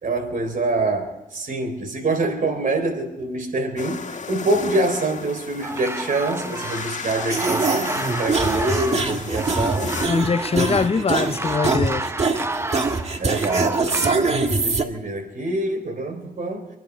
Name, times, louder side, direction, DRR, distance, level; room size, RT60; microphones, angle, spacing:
voice 1, 0.0-10.0 13.2-16.7, right 2 dB, 70° right, 3.9 m, -25 dB
sound 1, 3.8-10.1, left 5 dB, 60° left, 1.6 m, -34 dB
sound 2, 5.6-14.2, right 2 dB, 20° right, 0.8 m, -30 dB
sound 3, 7.3-14.8, right 4 dB, 50° right, 1.9 m, -24 dB
voice 2, 10.0-12.1, left 5 dB, 45° left, 0.6 m, -22 dB
27.5 x 10.5 x 5.0 m
cardioid pair, 70°, 14 cm